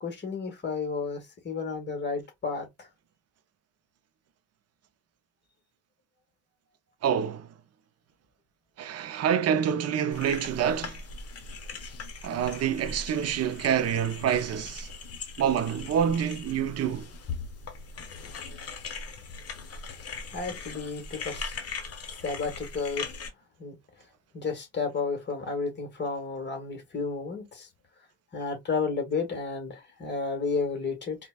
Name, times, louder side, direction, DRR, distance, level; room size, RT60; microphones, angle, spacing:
voice 1, 0.0-2.7 20.3-21.6 22.2-23.1 23.6-23.8 24.3-27.7 28.3-31.2, left 4 dB, 35° left, 1.5 m, -32 dB
voice 2, 7.0-7.5 8.8-11.0 12.2-14.9 15.4-17.1, right 8 dB, 55° right, 0.6 m, -27 dB
sound 1, 10.1-23.3, left 4 dB, 50° left, 0.9 m, -40 dB
4.1 x 2.2 x 2.3 m
cardioid pair, 90°, 30 cm